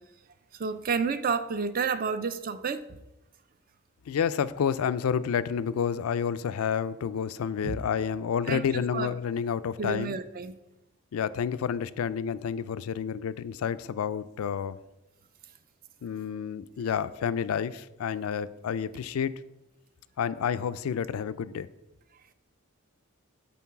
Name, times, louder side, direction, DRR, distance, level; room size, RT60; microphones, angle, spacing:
voice 1, 0.5-3.0 7.6-7.8 8.5-9.1 9.8-10.6, right 5 dB, 40° right, 12 dB, 0.4 m, -30 dB
voice 2, 4.1-10.2 11.1-14.8 16.0-19.3 20.2-21.7, left 7 dB, 80° left, 14 dB, 0.3 m, -29 dB
8.4 x 3.9 x 5.8 m, 0.96 s
head